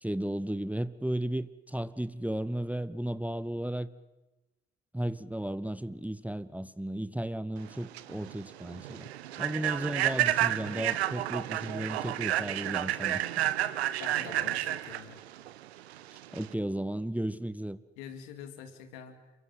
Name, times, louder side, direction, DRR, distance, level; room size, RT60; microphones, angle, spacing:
voice 1, 0.0-3.9 4.9-9.1 9.4-13.4 16.1-17.8, right 1 dB, 5° right, 1.1 m, -34 dB
Human voice / Train, 7.7-16.5, right 13 dB, 80° right, 1.0 m, -31 dB
voice 2, 14.0-15.2 18.0-19.3, left 8 dB, 70° left, 3.0 m, -46 dB
30.0 x 23.5 x 7.9 m
figure-of-eight pair, 45°, 32 cm